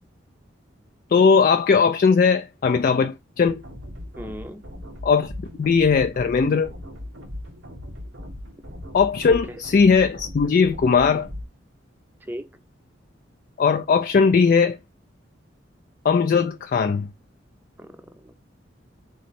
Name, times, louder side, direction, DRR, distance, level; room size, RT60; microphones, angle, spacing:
voice 1, 1.1-3.6 5.0-5.3 5.6-6.7 8.9-11.3 13.6-14.8 16.0-17.1, left 5 dB, 45° left, 0.3 m, -19 dB
sound 1, 3.4-11.4, left 1 dB, 85° right, 1.2 m, -38 dB
voice 2, 4.2-4.6 9.3-9.4 12.3-12.6 17.8-18.4, equal, 10° right, 0.6 m, -37 dB
4.2 x 3.1 x 4.1 m
head